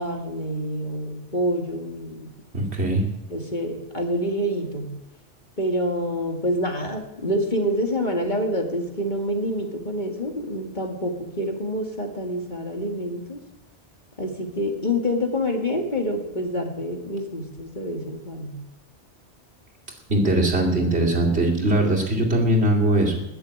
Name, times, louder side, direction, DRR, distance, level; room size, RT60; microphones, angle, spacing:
voice 1, 0.0-2.3 3.3-4.9 5.6-13.4 14.2-18.6, equal, 40° left, 2 dB, 2.2 m, -27 dB
voice 2, 2.5-3.0 20.1-23.2, right 1 dB, 65° right, -1 dB, 2.9 m, -21 dB
20.5 x 7.0 x 8.5 m, 0.91 s
omnidirectional pair, 1.2 m